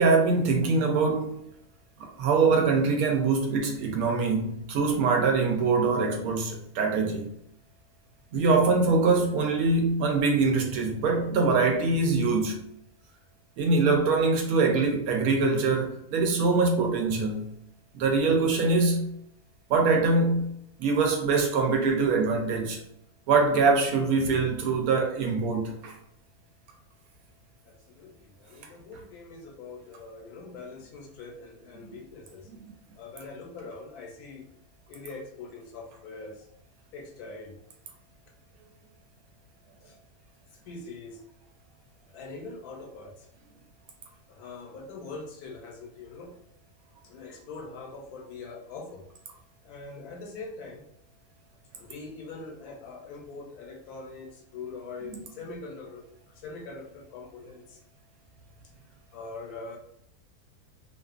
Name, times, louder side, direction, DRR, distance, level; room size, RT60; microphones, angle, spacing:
voice 1, 0.0-1.4 2.2-7.3 8.3-12.6 13.6-17.5 17.9-19.1 19.7-20.5 20.8-22.8 23.3-25.9 55.1-55.2, right 4 dB, 75° right, 1.0 m, -23 dB
voice 2, 27.7-32.5 33.0-34.4 34.9-36.4 36.9-37.5 39.8-39.9 40.7-41.2 42.1-43.3 44.3-46.3 47.0-49.1 49.6-50.8 51.8-56.0 56.4-57.8 59.1-59.8, left 3 dB, 90° left, 1.1 m, -42 dB
2.4 x 2.4 x 2.3 m
omnidirectional pair, 1.6 m